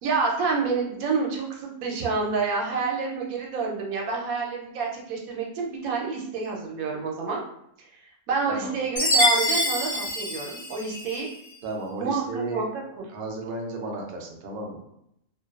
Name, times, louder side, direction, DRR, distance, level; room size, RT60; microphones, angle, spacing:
voice 1, 0.0-7.4 7.8-11.3 12.0-12.8, right 4 dB, 85° right, -1 dB, 1.0 m, -28 dB
voice 2, 8.5-8.8 11.6-12.6 13.1-14.8, right 2 dB, 65° right, 1 dB, 0.5 m, -33 dB
Chime, 9.0-11.3, left 1 dB, 45° left, 0.8 m, -25 dB
2.5 x 2.2 x 2.3 m, 0.77 s
omnidirectional pair, 1.4 m